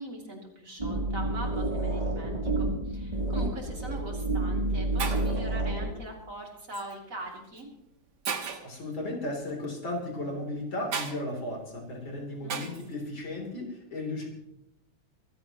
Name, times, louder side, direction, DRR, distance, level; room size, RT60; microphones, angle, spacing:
voice 1, 0.0-7.7 12.4-12.7, right 2 dB, 40° right, 0 dB, 3.2 m, -42 dB
sound 1, 0.8-5.9, right 2 dB, 20° right, 2.9 m, -29 dB
Shatter, 3.8-4.0 4.7-4.8 5.0-5.4 6.7-6.9 7.6-7.7 8.3-8.8 10.9-11.2 12.5-12.9, right 5 dB, 60° right, 1.9 m, -34 dB
voice 2, 8.6-14.3, left 1 dB, 75° left, 0 dB, 4.1 m, -35 dB
24.0 x 15.0 x 3.0 m, 0.84 s
omnidirectional pair, 2.2 m